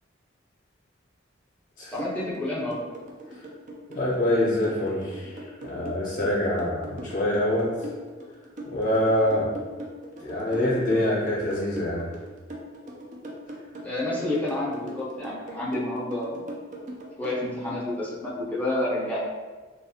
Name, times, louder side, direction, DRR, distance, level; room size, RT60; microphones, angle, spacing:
voice 1, 1.9-2.8 13.8-16.4 17.2-19.2, left 1 dB, 10° left, -7 dB, 0.6 m, -29 dB
sound 1, 2.0-17.4, right 1 dB, 40° right, 0.4 m, -40 dB
voice 2, 3.9-7.9 8.7-9.5 10.2-12.1, left 1 dB, 45° left, -7 dB, 0.6 m, -25 dB
2.5 x 2.2 x 2.7 m, 1.3 s
head